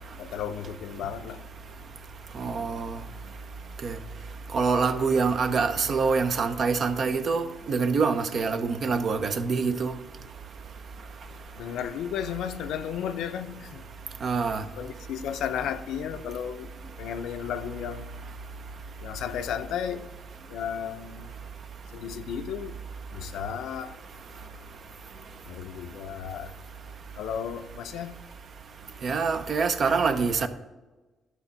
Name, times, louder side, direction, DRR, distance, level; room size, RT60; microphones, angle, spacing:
voice 1, 0.0-1.4 2.7-2.8 11.6-13.8 14.7-16.7 17.0-18.1 19.0-20.1 20.5-21.3 21.9-22.8 23.1-23.9 25.5-26.5 27.2-28.2, left 8 dB, 80° left, 0.5 m, -34 dB
voice 2, 2.4-3.0 3.8-3.9 4.5-9.9 14.2-14.6 29.0-30.5, right 5 dB, 55° right, 0.7 m, -25 dB
11.5 x 4.2 x 5.5 m
cardioid pair, 90°, 0 cm